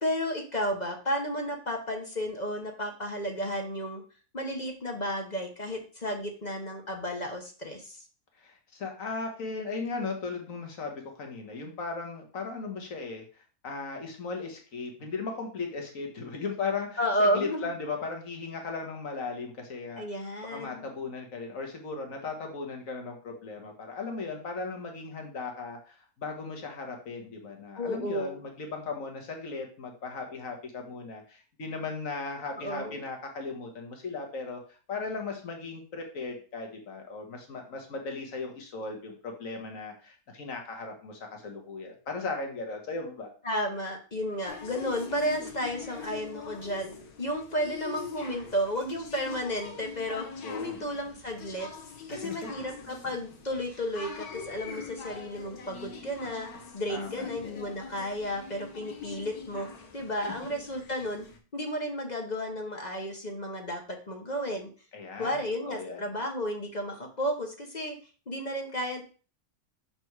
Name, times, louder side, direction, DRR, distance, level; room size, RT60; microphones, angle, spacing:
voice 1, 0.0-4.0 4.3-8.0 17.0-17.7 20.0-20.9 27.8-28.3 32.6-33.0 43.4-50.3 50.5-51.7 52.1-59.7 59.9-61.2 61.5-64.7 65.2-68.0 68.3-69.0, equal, 35° left, 3 dB, 1.0 m, -32 dB
voice 2, 8.4-20.0 20.5-43.3 50.4-50.8 52.1-52.5 56.9-57.3 60.2-60.3 64.9-66.1, left 4 dB, 65° left, 3 dB, 1.8 m, -37 dB
sound 1, 44.5-61.4, left 6 dB, 90° left, 1.6 m, -43 dB
6.0 x 4.4 x 4.7 m, 0.38 s
omnidirectional pair, 1.5 m